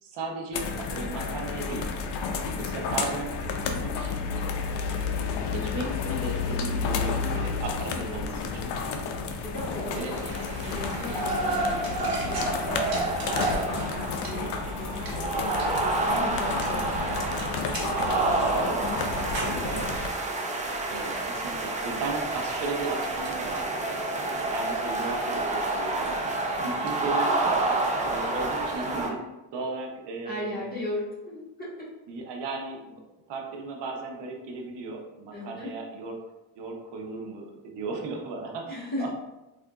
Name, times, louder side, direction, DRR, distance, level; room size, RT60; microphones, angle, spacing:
voice 1, 0.0-0.7 0.9-1.9 2.5-4.6 5.5-8.4 9.9-10.1 12.1-12.4 19.6-19.9 20.9-26.2 26.6-27.3 28.1-29.2 29.5-30.8 32.1-32.9 33.3-36.2 36.6-39.1, right 3 dB, 85° right, 1 dB, 0.7 m, -36 dB
sound 1, 0.5-20.1, left 5 dB, 80° left, 0.5 m, -31 dB
voice 2, 7.2-7.6 7.9-8.2 8.5-8.9 9.4-14.5 14.8-19.7 26.8-26.9 30.2-31.7 35.3-35.7 38.7-39.1, left 1 dB, 25° left, -7 dB, 1.4 m, -38 dB
sound 2, 9.2-28.9, right 2 dB, 60° right, 1.1 m, -44 dB
sound 3, 9.9-29.1, right 2 dB, 20° right, 0.4 m, -29 dB
3.6 x 2.5 x 2.3 m, 0.99 s
cardioid pair, 105°, 41 cm